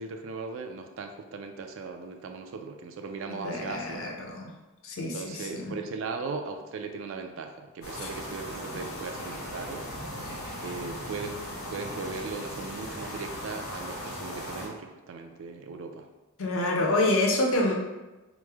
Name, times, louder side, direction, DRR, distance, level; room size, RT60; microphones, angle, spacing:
voice 1, 0.0-4.0 5.0-9.9 10.6-16.1, right 4 dB, 60° right, 5 dB, 0.3 m, -38 dB
voice 2, 3.3-4.5 4.8-5.7 16.4-17.7, left 2 dB, 65° left, 0 dB, 0.5 m, -27 dB
sound 1, 7.8-14.7, equal, 80° left, 1.1 m, -38 dB
3.0 x 2.0 x 3.3 m, 1.1 s
head